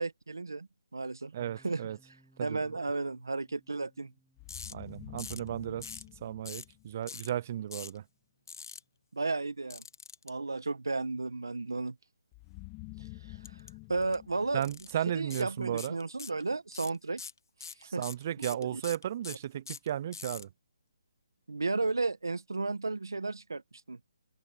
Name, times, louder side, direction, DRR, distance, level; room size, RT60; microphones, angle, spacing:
voice 1, 0.0-1.3 1.6-1.8 2.4-4.1 9.1-9.8 10.2-12.0 13.0-13.4 13.9-14.6 15.1-17.2 17.8-18.0 18.7-18.8 19.3-19.4 21.5-23.6 23.9-24.0, right 3 dB, 90° right, 1.4 m, -33 dB
voice 2, 1.3-2.0 2.4-2.6 4.7-8.0 14.5-16.0 17.8-20.5, right 11 dB, 40° right, 0.6 m, -35 dB
sound 1, 1.4-9.1, right 1 dB, ahead, 4.3 m, -67 dB
sound 2, 4.4-7.3 12.3-15.5, left 25 dB, 20° left, 2.1 m, -49 dB
sound 3, 4.5-4.7 5.2-5.5 5.8-6.1 6.5-6.7 7.1-7.3 7.7-8.0 8.5-8.8 9.7-10.3 13.4-13.7 14.0-14.2 14.6-14.9 15.3-15.5 15.8-16.4 16.7-20.4, left 5 dB, 70° left, 2.0 m, -43 dB
open air
hypercardioid pair, 155°, 2 cm